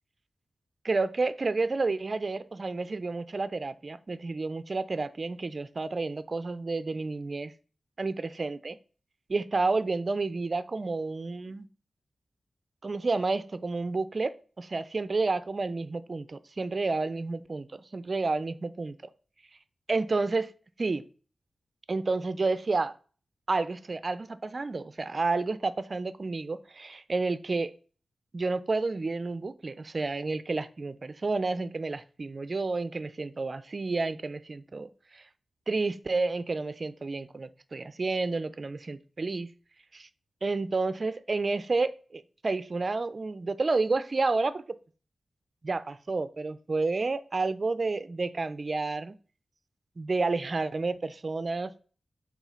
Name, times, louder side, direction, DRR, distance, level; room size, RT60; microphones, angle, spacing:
voice 1, 0.8-7.5 8.0-8.8 9.3-11.7 12.8-18.9 19.9-20.5 20.8-21.0 21.9-22.9 23.5-27.7 28.3-35.2 35.7-39.5 39.9-40.1 40.4-44.6 45.6-49.2 50.0-51.7, right 3 dB, 40° right, 14 dB, 0.5 m, -30 dB
7.3 x 3.7 x 5.6 m, 0.39 s
wide cardioid pair, 125°, 0 cm